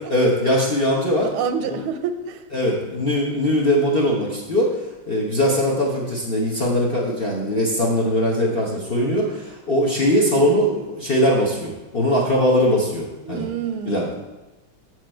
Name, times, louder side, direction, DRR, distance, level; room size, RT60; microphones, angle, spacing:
voice 1, 0.1-1.3 1.6-1.8 2.5-13.5 13.9-14.0, equal, 40° left, -3 dB, 0.9 m, -21 dB
voice 2, 1.2-2.4 8.5-8.8 13.2-14.1, right 7 dB, 90° right, 9 dB, 1.5 m, -28 dB
7.8 x 6.6 x 4.3 m, 1.1 s
omnidirectional pair, 2.3 m